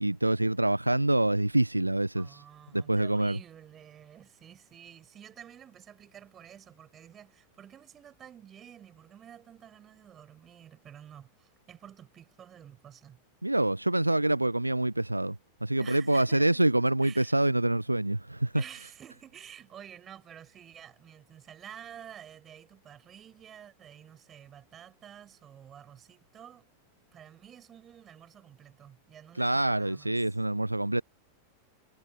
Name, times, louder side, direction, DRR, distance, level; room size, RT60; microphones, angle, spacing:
voice 1, 0.0-2.4 2.7-3.4 13.4-18.5 29.4-31.0, right 1 dB, 85° right, 0.6 m, -26 dB
voice 2, 2.2-13.2 15.8-16.6 17.0-17.4 18.5-26.7 27.1-30.2, right 9 dB, 25° right, 6.1 m, -50 dB
figure-of-eight pair, 90°, 0 cm